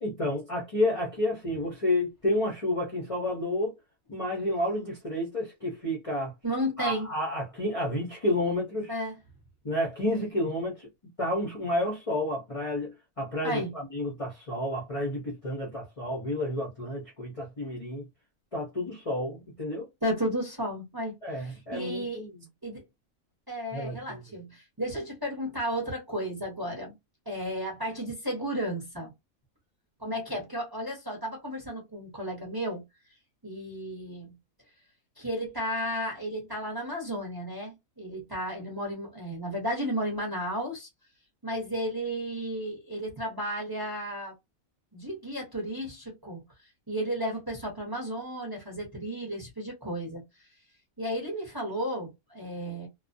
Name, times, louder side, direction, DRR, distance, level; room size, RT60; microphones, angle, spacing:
voice 1, 0.0-3.7 4.1-6.3 6.8-8.9 9.6-10.9 11.2-18.1 18.5-19.9 21.2-22.4 23.7-24.2, left 1 dB, 35° left, 0.5 m, -30 dB
voice 2, 6.4-7.1 8.9-9.1 13.4-13.7 20.0-22.2 22.6-22.8 23.5-26.9 27.3-29.1 30.0-32.8 33.4-34.3 35.2-40.9 41.4-44.3 44.9-46.4 46.9-50.2 51.0-52.9, equal, 20° right, 0.7 m, -33 dB
2.4 x 2.1 x 2.6 m
omnidirectional pair, 1.5 m